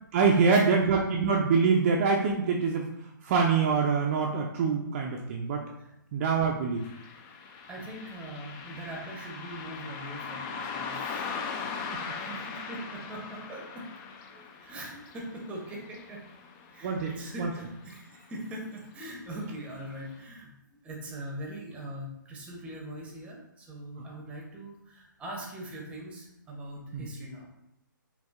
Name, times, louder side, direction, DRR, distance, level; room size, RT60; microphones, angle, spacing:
voice 1, 0.1-5.6 6.1-6.9 12.1-12.2 16.8-17.1 17.4-17.5 24.0-24.1 26.9-27.1, right 5 dB, 35° right, 0 dB, 0.4 m, -25 dB
Car passing by, 6.8-17.6 17.9-18.0 18.9-19.1 19.6-19.7 20.2-20.3, left 5 dB, 25° left, 0.4 m, -40 dB
voice 2, 7.7-11.4 12.3-13.9 14.3-16.2 16.7-27.5, right 1 dB, 10° right, -1 dB, 0.8 m, -41 dB
4.9 x 2.6 x 2.4 m, 0.84 s
hypercardioid pair, 140°, 11 cm